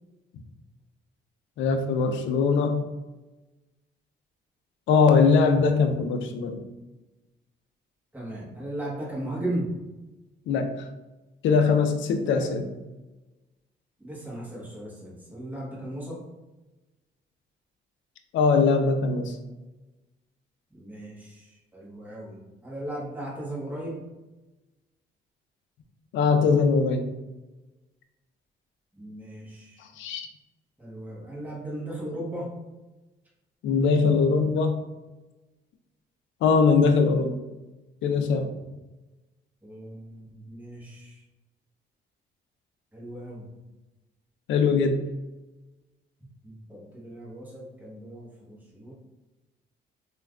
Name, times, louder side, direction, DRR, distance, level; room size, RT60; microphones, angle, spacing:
voice 1, 1.6-2.8 4.9-6.6 10.5-10.7 11.4-12.7 18.3-19.4 26.1-27.0 29.8-30.3 33.6-34.8 36.4-37.4 38.0-38.5 44.5-45.0, left 5 dB, 70° left, 7 dB, 0.4 m, -21 dB
voice 2, 8.1-9.7 12.3-12.5 14.0-16.2 20.7-24.0 28.9-29.9 30.8-32.5 39.6-41.2 42.9-43.5 46.4-48.9, right 1 dB, 10° right, -6 dB, 1.0 m, -37 dB
3.2 x 2.3 x 2.3 m, 1.1 s
cardioid pair, 90°, 20 cm